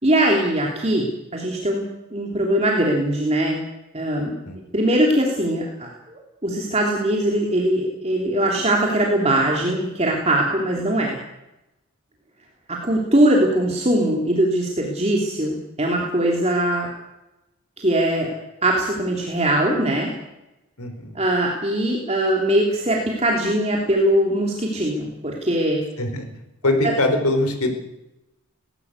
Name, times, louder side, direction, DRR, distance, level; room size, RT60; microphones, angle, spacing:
voice 1, 0.0-1.8 2.1-3.6 3.9-4.4 4.7-11.2 12.7-16.9 17.8-18.3 18.6-20.1 21.1-25.9 26.8-26.9, right 1 dB, 30° right, -1 dB, 3.0 m, -21 dB
voice 2, 20.8-21.2 26.0-26.3 26.6-27.7, left 2 dB, 90° left, 6 dB, 4.6 m, -22 dB
19.0 x 17.0 x 8.3 m, 0.93 s
head